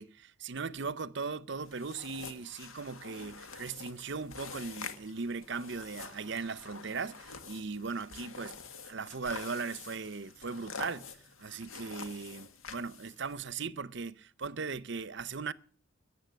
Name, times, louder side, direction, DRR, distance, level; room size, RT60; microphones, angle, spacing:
voice 1, 0.0-8.6 8.8-11.1 11.4-15.5, right 4 dB, 60° right, 0.7 m, -38 dB
sound 1, 1.7-13.3, left 5 dB, 80° left, 1.7 m, -47 dB
14.5 x 8.4 x 9.2 m
head